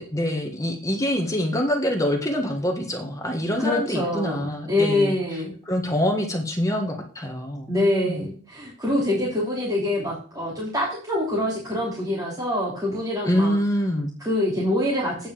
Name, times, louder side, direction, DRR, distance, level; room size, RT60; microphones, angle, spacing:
voice 1, 0.0-5.1 5.7-7.7 8.0-8.2 13.2-14.1, equal, 15° left, 2 dB, 1.5 m, -25 dB
voice 2, 3.6-5.5 7.7-13.6 14.2-15.3, left 1 dB, 20° right, -7 dB, 3.1 m, -25 dB
8.9 x 5.6 x 7.5 m, 0.41 s
head